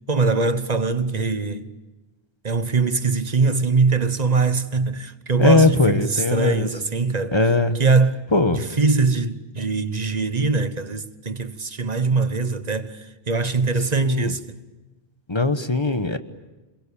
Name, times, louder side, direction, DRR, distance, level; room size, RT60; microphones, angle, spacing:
voice 1, 0.1-1.7 2.4-7.3 7.7-8.2 8.5-14.6, right 4 dB, 40° right, 1.2 m, -22 dB
voice 2, 5.4-6.7 7.3-7.8 8.3-8.6 14.0-14.3 15.3-16.2, left 2 dB, 25° left, 1.2 m, -19 dB
28.0 x 21.5 x 8.5 m
omnidirectional pair, 1.0 m